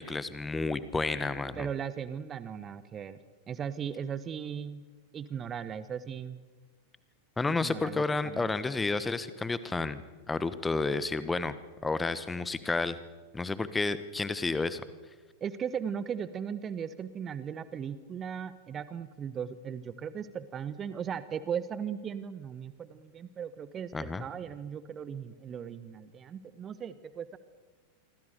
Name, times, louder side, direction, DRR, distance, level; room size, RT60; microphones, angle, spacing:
voice 1, 0.0-1.7 7.4-10.0 10.3-11.5 11.8-13.0 13.3-14.8 23.9-24.2, left 3 dB, 10° left, 14 dB, 1.3 m, -31 dB
voice 2, 1.5-4.8 5.1-6.4 7.5-8.5 15.4-27.4, right 7 dB, 25° right, 15 dB, 1.1 m, -37 dB
27.0 x 24.5 x 6.8 m, 1.3 s
figure-of-eight pair, 90°, 0 cm